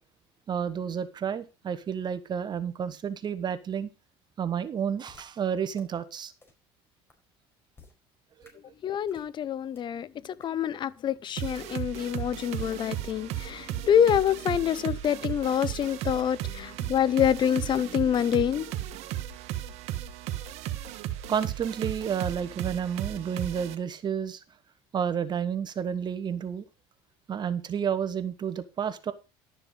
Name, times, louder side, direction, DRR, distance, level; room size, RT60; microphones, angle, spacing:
voice 1, 0.5-3.9 4.4-6.3 8.4-8.5 21.3-24.4 24.9-26.6 27.3-29.1, right 8 dB, 40° right, 1.1 m, -30 dB
sound 1, 5.1-5.2 5.7-5.8 6.4-6.5 7.1-7.2 7.7-7.9 8.4-8.5 9.1-9.3 9.7-9.8 10.4-10.5, left 3 dB, 20° left, 4.6 m, -52 dB
voice 2, 8.8-18.7, left 9 dB, 45° left, 0.7 m, -26 dB
sound 2, 11.4-23.7, right 12 dB, 70° right, 1.4 m, -35 dB
12.0 x 6.9 x 5.3 m
supercardioid pair, 95°, 11 cm